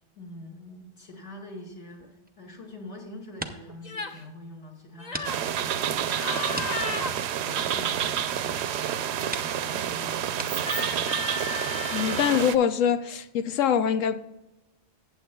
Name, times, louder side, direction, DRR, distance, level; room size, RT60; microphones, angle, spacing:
voice 1, 0.2-11.4, left 1 dB, 65° left, 2.4 m, -45 dB
sound 1, 1.9-2.9 3.2-3.8 4.3-4.4 5.1-5.3 5.6-5.7 6.5-8.1 8.8-8.9 9.3-9.5 10.3-10.5, right 1 dB, 15° right, 0.4 m, -39 dB
sound 2, 3.8-4.2 5.0-5.4 6.1-7.1 10.5-12.5, left 3 dB, 40° left, 0.8 m, -34 dB
sound 3, 5.2-12.6, right 9 dB, 65° right, 0.8 m, -29 dB
voice 2, 11.9-14.2, left 8 dB, 85° left, 1.0 m, -24 dB
14.5 x 9.1 x 2.3 m
omnidirectional pair, 1.3 m